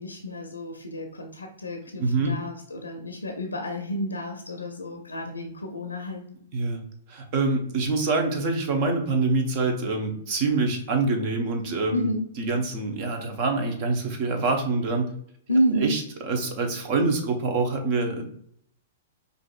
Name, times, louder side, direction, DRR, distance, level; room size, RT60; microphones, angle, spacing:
voice 1, 0.0-6.3 11.9-12.3 15.5-16.0, equal, 90° left, 4 dB, 0.5 m, -30 dB
voice 2, 2.0-2.4 6.5-6.8 7.1-12.1 12.4-15.1 15.8-18.3, right 3 dB, 45° right, 4 dB, 0.9 m, -25 dB
4.9 x 2.6 x 2.3 m, 0.67 s
hypercardioid pair, 115°, 0 cm